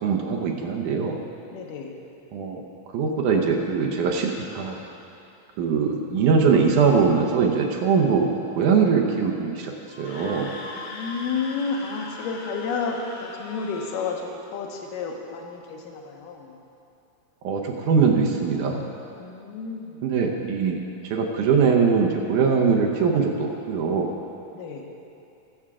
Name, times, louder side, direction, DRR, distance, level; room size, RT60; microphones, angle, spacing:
voice 1, 0.0-1.2 2.3-2.6 2.9-4.8 5.6-9.7 10.0-10.5 17.4-18.8 20.0-20.8 21.1-24.1, right 5 dB, 70° right, 1 dB, 2.2 m, -22 dB
voice 2, 1.5-2.0 10.8-16.5 19.2-20.1 24.5-24.8, left 5 dB, 75° left, 2 dB, 2.6 m, -31 dB
Screaming, 9.9-14.2, left 2 dB, 55° left, 1.8 m, -39 dB
20.5 x 7.2 x 3.6 m, 2.8 s
omnidirectional pair, 4.0 m